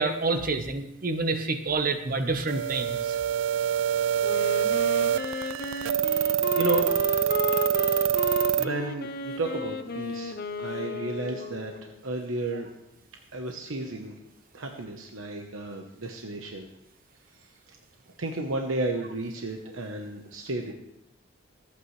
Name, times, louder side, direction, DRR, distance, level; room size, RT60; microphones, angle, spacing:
voice 1, 0.0-3.2, right 3 dB, 45° right, 7 dB, 1.1 m, -28 dB
sound 1, 2.5-8.7, right 10 dB, 75° right, 0.4 m, -25 dB
Wind instrument woodwind instrument, 4.2-12.0, left 4 dB, 50° left, 0.7 m, -34 dB
voice 2, 6.5-6.9 8.6-12.7 13.3-14.1 14.5-16.7 18.2-20.7, right 2 dB, 90° right, 3 dB, 1.1 m, -32 dB
25.5 x 8.7 x 3.3 m, 0.87 s
head